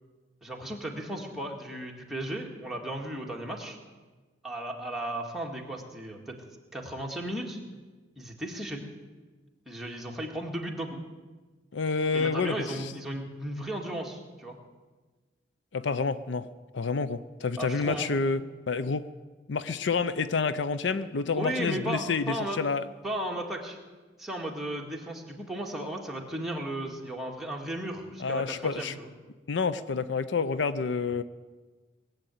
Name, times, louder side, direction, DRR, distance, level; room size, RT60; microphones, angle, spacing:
voice 1, 0.4-3.8 4.4-6.4 6.7-7.6 8.2-8.8 9.7-11.0 12.1-14.6 17.6-18.1 21.4-22.6 23.0-23.8 24.2-29.1, right 1 dB, ahead, -1 dB, 1.9 m, -35 dB
voice 2, 11.7-12.9 15.7-16.5 16.7-19.1 19.5-22.8 28.2-29.0 29.5-31.2, left 4 dB, 75° left, 13 dB, 0.6 m, -29 dB
19.5 x 8.0 x 9.1 m, 1.3 s
head